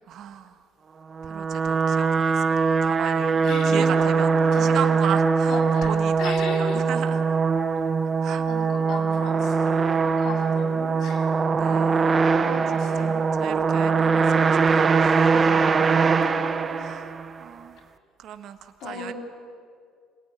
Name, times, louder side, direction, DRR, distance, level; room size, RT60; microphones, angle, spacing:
voice 1, 0.1-0.6 1.2-4.3 4.6-7.4 8.2-8.5 11.5-12.2 12.7-15.6 16.8-17.8 18.2-19.1, right 9 dB, 55° right, 8 dB, 1.5 m, -36 dB
sound 1, 1.1-17.4, right 5 dB, 30° right, 1.0 m, -22 dB
voice 2, 3.4-3.9 4.5-4.8 5.5-6.8 8.5-11.3 12.0-13.2 16.0-16.9 18.8-19.1, left 3 dB, 60° left, 1 dB, 7.1 m, -36 dB
25.5 x 18.5 x 10.0 m, 2.1 s
cardioid pair, 125°, 0 cm